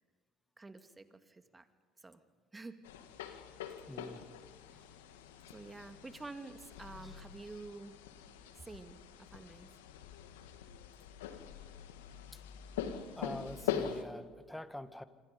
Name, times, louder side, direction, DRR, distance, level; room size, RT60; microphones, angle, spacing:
voice 1, 0.6-1.7 2.0-2.2 2.5-2.8 5.5-8.0 8.6-9.7, right 3 dB, 20° right, 9 dB, 2.3 m, -49 dB
sound 1, 2.8-14.0, left 9 dB, 85° left, 1.9 m, -43 dB
voice 2, 3.9-4.3 4.6-5.0 7.0-7.2 12.3-12.4 13.0-15.0, left 1 dB, 5° left, 12 dB, 1.7 m, -46 dB
26.5 x 26.5 x 5.4 m, 1.5 s
hypercardioid pair, 65°, 0 cm